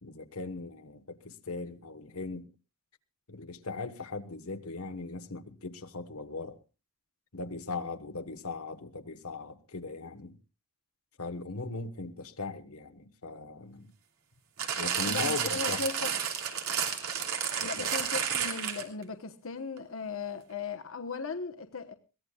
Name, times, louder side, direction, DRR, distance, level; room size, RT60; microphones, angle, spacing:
voice 1, 0.0-2.5 3.3-6.6 7.3-10.4 11.2-13.9 14.8-15.8 17.6-17.9, left 3 dB, 85° left, 1.3 m, -39 dB
sound 1, 14.6-19.0 19.8-19.9, right 7 dB, 80° right, 3.0 m, -31 dB
voice 2, 15.1-16.1 17.6-21.9, left 4 dB, 65° left, 1.1 m, -37 dB
22.5 x 17.0 x 2.3 m
head